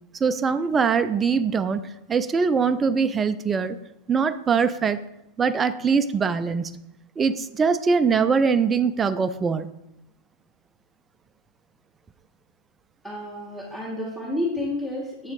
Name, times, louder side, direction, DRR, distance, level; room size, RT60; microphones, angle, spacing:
voice 1, 0.1-3.8 4.1-5.0 5.4-6.8 7.2-9.7, right 5 dB, 20° right, 11 dB, 0.3 m, -22 dB
voice 2, 13.0-15.3, left 1 dB, 5° left, -8 dB, 1.7 m, -30 dB
7.9 x 4.4 x 3.8 m, 0.85 s
figure-of-eight pair, 90°, 0 cm